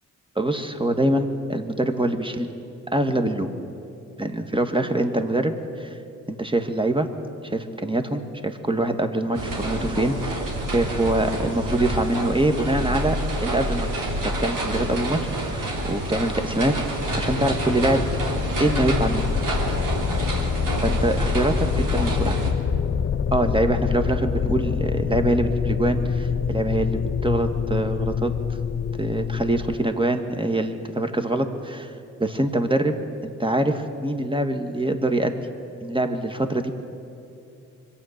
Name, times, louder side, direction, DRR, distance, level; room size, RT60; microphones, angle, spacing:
voice 1, 0.4-2.5 2.9-3.5 4.2-6.0 6.3-7.1 7.4-13.2 13.4-16.8 17.1-18.0 18.6-19.2 20.8-22.4 23.3-28.3 29.0-31.9 32.2-33.0 33.2-35.3 35.8-36.7, right 1 dB, 15° right, 7 dB, 1.7 m, -24 dB
sound 1, 9.3-22.5, right 1 dB, 60° right, 3.3 m, -28 dB
sound 2, 17.1-29.7, left 6 dB, 35° left, 0.6 m, -26 dB
24.5 x 8.8 x 6.6 m, 2.7 s
hypercardioid pair, 40°, 36 cm